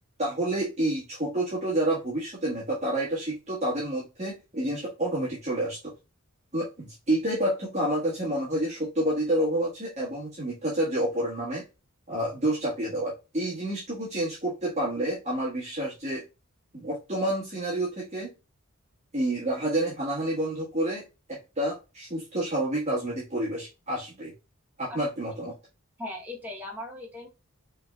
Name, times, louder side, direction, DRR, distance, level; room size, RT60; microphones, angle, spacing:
voice 1, 0.2-5.8 6.5-11.6 12.1-16.2 16.7-18.3 19.1-21.0 21.3-24.3 24.8-25.5, right 1 dB, 30° right, -8 dB, 1.5 m, -29 dB
voice 2, 26.0-27.3, left 2 dB, 10° right, -2 dB, 1.0 m, -38 dB
5.7 x 3.4 x 2.3 m, 0.28 s
head